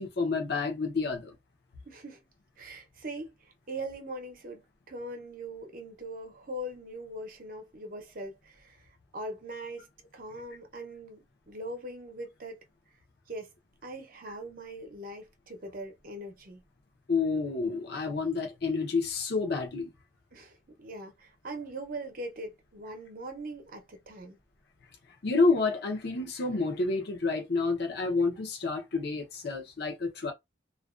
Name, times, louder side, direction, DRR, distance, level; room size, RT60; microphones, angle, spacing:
voice 1, 0.0-1.3 17.1-19.9 25.2-30.3, left 4 dB, 60° left, 0.6 m, -29 dB
voice 2, 1.9-2.2 2.6-9.9 10.1-12.6 13.3-13.5 13.8-16.6 20.3-24.4, right 1 dB, 50° right, 0.7 m, -41 dB
2.4 x 2.2 x 2.4 m
head